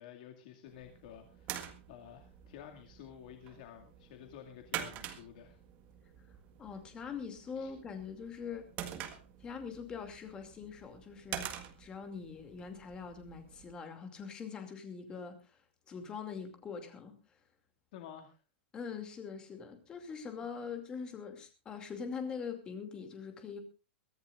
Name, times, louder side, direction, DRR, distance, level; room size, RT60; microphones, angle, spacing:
voice 1, 0.0-1.6 1.9-5.6 7.6-7.7 17.9-18.4, left 9 dB, 45° left, 3 dB, 2.3 m, -51 dB
sound 1, 0.7-13.7, right 11 dB, 25° right, 1.7 m, -47 dB
voice 2, 6.6-8.7 9.4-11.5 11.8-15.6 15.9-17.1 18.7-23.6, left 6 dB, 15° left, 6 dB, 2.5 m, -43 dB
23.0 x 14.5 x 2.5 m, 0.30 s
supercardioid pair, 170°, 6 cm